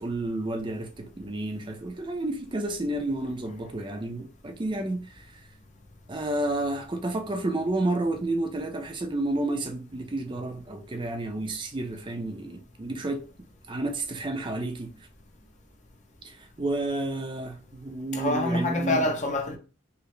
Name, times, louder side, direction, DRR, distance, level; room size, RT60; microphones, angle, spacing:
voice 1, 0.0-5.4 6.1-13.3 13.7-14.9 16.2-19.1, right 2 dB, 25° right, 0.5 m, -31 dB
voice 2, 18.1-19.6, left 1 dB, 40° left, 0.7 m, -26 dB
4.6 x 2.0 x 3.2 m
head